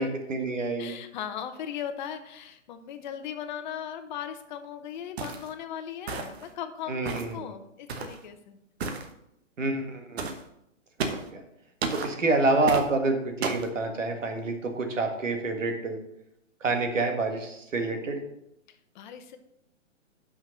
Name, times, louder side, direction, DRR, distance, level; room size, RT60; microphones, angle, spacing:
voice 1, 0.0-0.9 6.9-7.5 9.6-10.2 11.1-11.4 11.9-16.0 16.6-18.2, right 3 dB, 75° right, 4 dB, 1.8 m, -28 dB
voice 2, 0.8-8.6 18.7-19.4, left 9 dB, 40° left, 9 dB, 0.8 m, -38 dB
sound 1, 5.2-5.5 6.1-6.5 7.1-7.4 7.9-8.2 8.8-9.1 10.2-10.4 11.0-11.3 11.8-12.1 12.7-12.9 13.4-13.7, right 4 dB, 55° right, 1.1 m, -32 dB
6.0 x 5.3 x 6.5 m, 0.81 s
hypercardioid pair, 130°, 38 cm